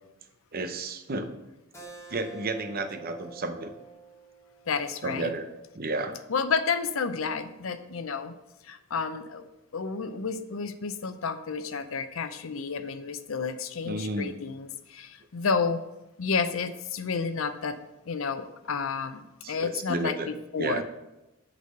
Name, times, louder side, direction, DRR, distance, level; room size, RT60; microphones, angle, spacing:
voice 1, 0.5-1.3 2.1-3.7 5.0-5.5 5.8-6.2 13.8-14.4 19.4-20.3 20.6-20.8, right 2 dB, 45° right, 8 dB, 0.7 m, -32 dB
Keyboard (musical), 1.7-6.9, right 4 dB, 15° left, 1.5 m, -49 dB
voice 2, 4.7-5.3 6.3-8.4 8.6-9.5 9.7-15.8 16.2-17.8 18.1-20.8, left 5 dB, 70° left, 11 dB, 0.6 m, -31 dB
8.2 x 4.1 x 6.5 m, 0.96 s
head